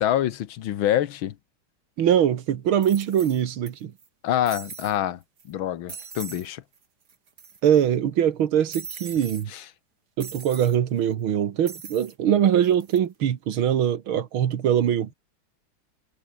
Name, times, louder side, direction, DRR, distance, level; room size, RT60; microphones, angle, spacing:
voice 1, 0.0-1.4 4.2-5.2 5.5-6.6 9.5-9.6, left 11 dB, 75° left, 1.8 m, -26 dB
sound 1, 2.0-2.1 2.8-3.7 4.0-4.1 4.5-5.0 5.4-5.5 5.9-6.5 6.8-6.9 7.1-7.8 8.7-9.4 10.2-10.8 11.7-12.1 12.6-13.0, right 6 dB, 50° right, 2.8 m, -40 dB
voice 2, 2.0-3.9 7.6-9.5 10.2-15.1, right 9 dB, 85° right, 2.2 m, -22 dB
omnidirectional pair, 2.2 m